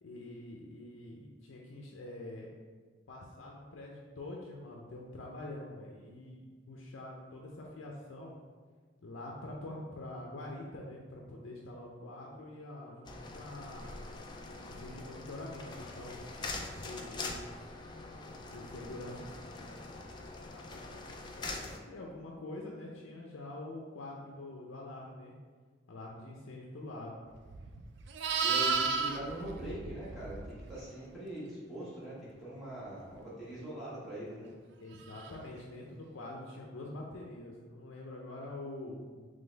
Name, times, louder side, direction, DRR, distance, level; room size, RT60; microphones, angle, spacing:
voice 1, 0.0-2.5 3.1-8.4 9.0-13.9 14.7-17.7 18.5-19.9 20.1-25.3 25.9-27.2 34.8-39.3, left 2 dB, 80° left, -1 dB, 0.5 m, -46 dB
sound 1, 13.1-21.8, left 3 dB, 25° left, 0.3 m, -44 dB
Livestock farm animals working animals, 27.5-30.8 35.1-35.3, right 5 dB, 60° right, 0.3 m, -33 dB
voice 2, 28.4-34.5, right 1 dB, ahead, -10 dB, 1.4 m, -42 dB
3.9 x 3.3 x 3.9 m, 1.5 s
head